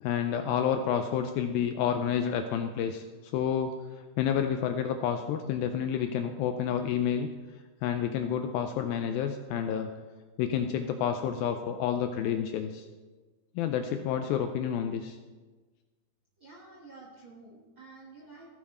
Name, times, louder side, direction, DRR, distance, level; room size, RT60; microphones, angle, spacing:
voice 1, 0.0-3.8 4.2-7.3 7.8-9.9 10.4-12.9 13.6-15.2, left 8 dB, 80° left, 7 dB, 2.2 m, -29 dB
voice 2, 16.4-18.5, right 3 dB, 70° right, -4 dB, 1.1 m, -50 dB
15.5 x 7.2 x 4.2 m, 1.3 s
omnidirectional pair, 4.6 m